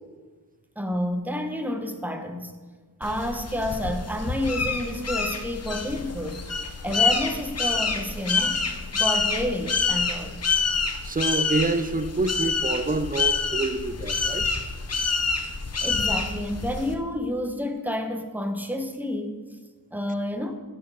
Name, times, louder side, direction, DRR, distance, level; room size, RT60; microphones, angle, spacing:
voice 1, 0.8-2.5 3.0-6.4 6.8-8.6 8.9-10.4 15.8-19.4 19.9-20.5, left 1 dB, 5° right, 5 dB, 1.0 m, -29 dB
sound 1, 3.0-16.9, left 4 dB, 40° left, 0.8 m, -27 dB
voice 2, 11.0-14.5, right 3 dB, 20° right, 11 dB, 0.6 m, -27 dB
12.5 x 4.5 x 4.9 m, 1.4 s
wide cardioid pair, 65°, 38 cm